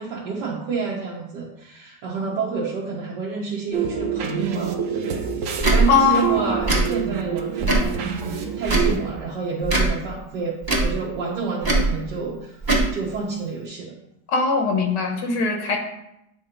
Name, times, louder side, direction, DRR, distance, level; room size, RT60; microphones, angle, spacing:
voice 1, 0.0-12.6 12.9-14.0, right 4 dB, 80° right, -4 dB, 1.5 m, -29 dB
sound 1, 3.7-9.0, right 7 dB, 65° right, 0.9 m, -27 dB
Tick / Tick-tock, 5.6-5.8 6.6-6.8 7.6-7.9 8.6-8.9 9.6-9.9 10.6-10.9 11.6-11.9 12.6-12.9, right 2 dB, 20° right, 0.7 m, -20 dB
voice 2, 5.9-6.5 14.3-15.8, left 5 dB, 80° left, 3 dB, 1.7 m, -21 dB
8.3 x 2.9 x 5.0 m, 0.83 s
omnidirectional pair, 1.8 m